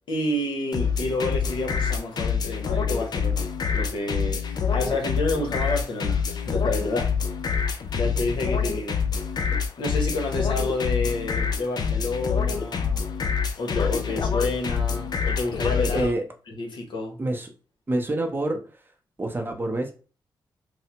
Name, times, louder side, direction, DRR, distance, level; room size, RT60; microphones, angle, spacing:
voice 1, 0.1-3.5 3.7-7.1 7.5-9.0 9.8-13.0 13.6-16.1 16.5-17.2, left 2 dB, 70° left, 2 dB, 1.0 m, -29 dB
sound 1, 0.7-16.1, left 6 dB, 55° left, 0.4 m, -26 dB
voice 2, 17.2-17.5 17.9-18.9 19.2-19.9, right 2 dB, 25° right, 3 dB, 0.6 m, -27 dB
3.2 x 2.0 x 2.8 m, 0.36 s
cardioid pair, 90°, 8 cm